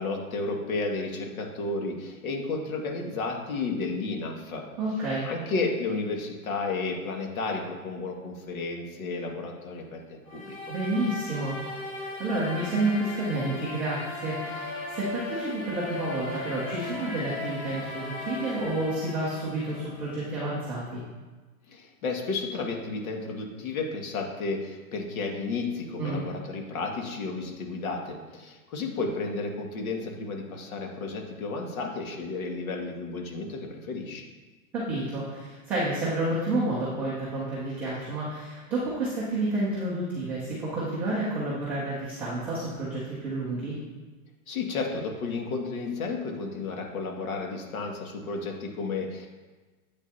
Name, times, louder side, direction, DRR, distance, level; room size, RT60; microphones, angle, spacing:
voice 1, 0.0-4.6 5.2-10.6 21.7-34.2 44.5-49.3, left 3 dB, 70° left, 1 dB, 2.1 m, -32 dB
voice 2, 4.8-5.3 10.7-21.0 26.0-26.2 34.7-43.8, right 2 dB, 5° right, -11 dB, 0.3 m, -30 dB
sound 1, 10.3-20.2, left 2 dB, 25° left, 2.2 m, -37 dB
9.8 x 8.2 x 2.8 m, 1.3 s
hypercardioid pair, 145°, 44 cm